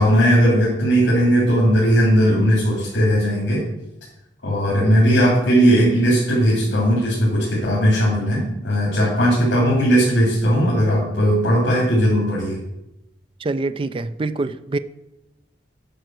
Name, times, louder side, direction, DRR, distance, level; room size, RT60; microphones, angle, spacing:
voice 1, 0.0-3.6 4.4-12.6, equal, 80° left, -6 dB, 3.1 m, -17 dB
voice 2, 13.4-14.8, right 2 dB, 30° right, 12 dB, 0.3 m, -25 dB
9.3 x 5.0 x 6.2 m, 0.91 s
head